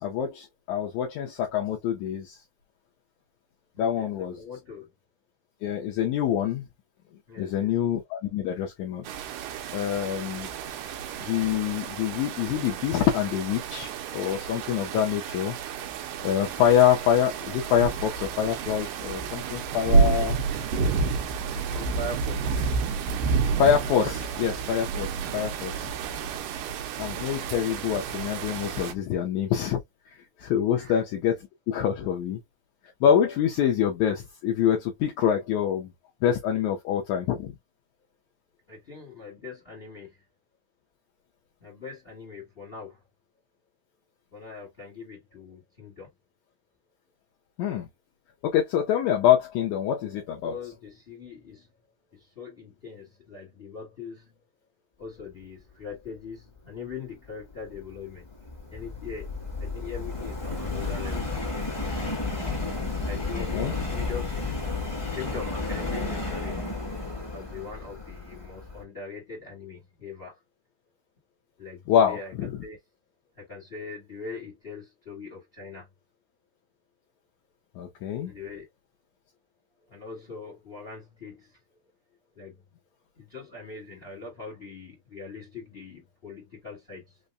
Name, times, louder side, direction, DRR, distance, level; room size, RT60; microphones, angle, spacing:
voice 1, 0.0-2.4 3.8-4.4 5.6-6.6 7.4-9.1 9.7-10.5 11.3-15.6 16.2-20.4 23.6-25.9 27.0-29.8 30.1-31.4 31.7-32.4 33.0-35.9 36.2-37.5 47.6-47.9 48.4-50.5 63.3-63.7 71.9-72.5 77.7-78.3, left 9 dB, 80° left, 1.7 m, -25 dB
voice 2, 3.7-4.1 4.4-4.9 7.3-7.7 21.7-22.6 30.7-31.0 38.7-40.2 41.6-43.0 44.3-46.1 50.4-51.7 52.1-54.4 55.0-58.3 58.7-59.3 59.6-61.3 63.0-64.3 65.1-66.6 67.3-70.4 71.6-72.3 72.6-72.8 73.3-75.9 78.2-78.7 79.9-81.6 82.3-82.6 83.1-87.2, left 4 dB, 60° left, 0.5 m, -41 dB
sound 1, 9.1-28.9, right 5 dB, 80° right, 2.2 m, -30 dB
Subway metro underground, 57.5-68.8, left 3 dB, 20° left, 0.7 m, -32 dB
5.4 x 2.1 x 2.5 m
omnidirectional pair, 4.0 m